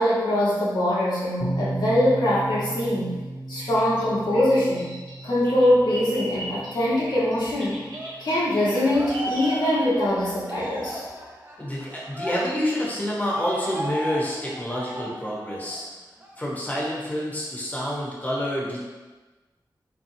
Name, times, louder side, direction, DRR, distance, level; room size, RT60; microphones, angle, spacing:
voice 1, 0.0-3.2 3.5-5.0 5.2-7.8 8.2-11.0, left 1 dB, 70° left, -7 dB, 1.2 m, -23 dB
sound 1, 1.4-9.1, right 1 dB, 40° left, 0.7 m, -36 dB
Bird vocalization bird call bird song, 3.6-10.1, equal, 70° right, 1.2 m, -39 dB
Cheering, 7.8-15.8 16.2-16.4 16.7-17.7, equal, 25° right, 0.6 m, -36 dB
voice 2, 11.6-15.8 16.4-18.8, equal, 20° left, -5 dB, 1.1 m, -28 dB
4.1 x 2.9 x 2.7 m, 1.2 s
wide cardioid pair, 75°, 8 cm